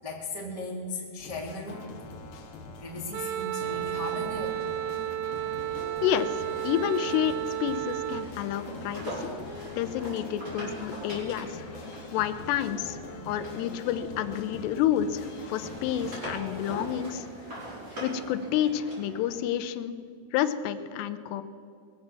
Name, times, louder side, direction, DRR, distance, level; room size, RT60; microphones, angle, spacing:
voice 1, 0.0-1.9 2.8-4.6 9.1-9.2 13.1-13.3, left 2 dB, 70° right, -4 dB, 0.3 m, -37 dB
sound 1, 1.2-16.9, left 3 dB, 65° left, 3.0 m, -43 dB
Wind instrument woodwind instrument, 3.1-8.3, right 13 dB, 85° right, 2.0 m, -32 dB
sound 2, 4.2-14.7 15.1-19.4, right 1 dB, 20° right, 5.2 m, -43 dB
voice 2, 6.0-9.3 9.7-11.7 12.1-13.0 13.3-17.3 18.0-19.9 20.3-21.4, left 10 dB, 85° left, 11 dB, 2.8 m, -29 dB
21.5 x 7.5 x 7.5 m, 2.2 s
omnidirectional pair, 4.9 m